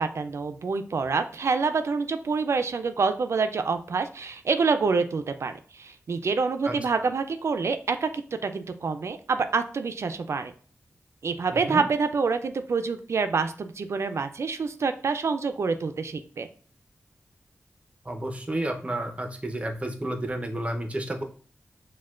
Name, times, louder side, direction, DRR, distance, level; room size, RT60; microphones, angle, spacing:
voice 1, 0.0-10.5 11.2-16.5, right 4 dB, 70° right, 9 dB, 0.3 m, -27 dB
voice 2, 11.5-11.9 18.1-21.2, right 1 dB, 25° right, 4 dB, 0.6 m, -31 dB
6.4 x 2.2 x 2.3 m, 0.43 s
wide cardioid pair, 75°, 5 cm